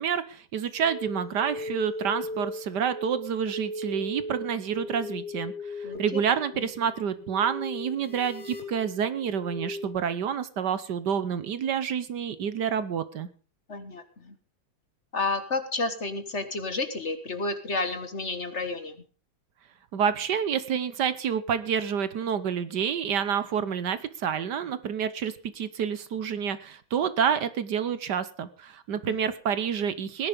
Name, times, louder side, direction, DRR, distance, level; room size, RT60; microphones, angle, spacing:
voice 1, 0.0-13.3 19.9-30.3, right 7 dB, 65° right, 14 dB, 1.5 m, -28 dB
sound 1, 0.8-10.0, left 1 dB, 5° left, 3.4 m, -38 dB
voice 2, 5.8-6.2 13.7-14.3 15.1-19.0 29.1-29.2, left 3 dB, 40° left, 9 dB, 1.6 m, -31 dB
19.0 x 10.5 x 5.1 m, 0.37 s
omnidirectional pair, 2.1 m